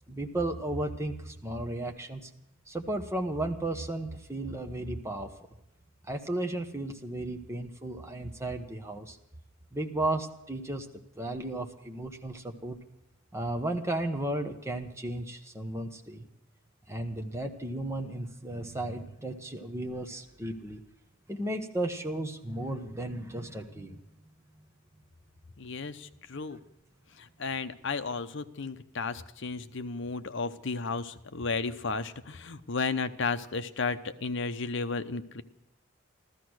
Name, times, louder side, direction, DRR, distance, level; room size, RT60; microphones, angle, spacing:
voice 1, 0.1-2.3 2.7-5.3 6.1-9.2 9.7-10.9 11.2-12.8 13.3-16.3 16.9-20.8 21.3-24.0 24.6-24.7, right 1 dB, 15° right, 4 dB, 1.1 m, -34 dB
voice 2, 25.6-26.6 27.2-35.4, left 4 dB, 60° left, 10 dB, 0.8 m, -33 dB
14.0 x 14.0 x 6.3 m, 0.87 s
head